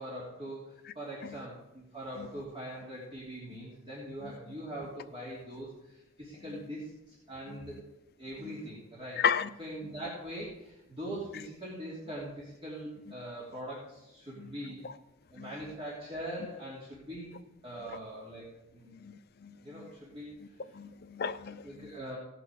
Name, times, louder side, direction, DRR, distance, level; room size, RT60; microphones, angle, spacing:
voice 1, 0.0-7.8 8.2-9.2 9.6-14.8 15.3-17.4 17.6-18.5 18.7-19.0 19.6-20.4 21.6-22.2, right 1 dB, 30° right, 3.1 m, -42 dB
voice 2, 9.2-9.5 14.4-14.5 14.8-14.9 15.4-15.5 19.0-19.9 20.7-21.9, left 7 dB, 50° left, 0.6 m, -34 dB
17.5 x 6.2 x 6.5 m
head